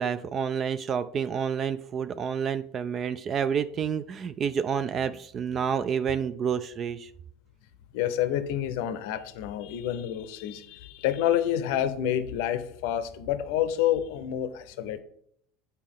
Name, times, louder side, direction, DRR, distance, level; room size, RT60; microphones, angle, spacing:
voice 1, 0.0-7.1, right 7 dB, 40° right, 14 dB, 0.3 m, -29 dB
voice 2, 7.9-15.0, left 11 dB, 65° left, 11 dB, 0.6 m, -28 dB
8.8 x 4.2 x 3.7 m, 0.68 s
hypercardioid pair, 80°, 0 cm